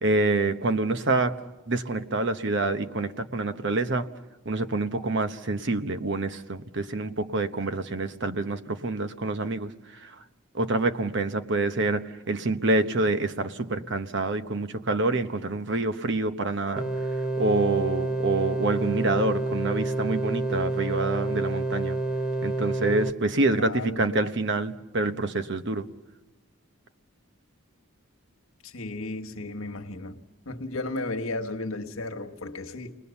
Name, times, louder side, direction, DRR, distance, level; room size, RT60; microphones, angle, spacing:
voice 1, 0.0-4.1 4.4-10.1 10.5-16.9 17.4-22.0 22.4-25.9, right 2 dB, 60° right, 1.0 m, -27 dB
sound 1, 16.8-23.1, right 2 dB, 5° right, 1.0 m, -28 dB
voice 2, 23.5-24.3 28.6-30.2 30.4-33.0, left 2 dB, 85° left, 1.5 m, -34 dB
30.0 x 20.5 x 7.1 m
head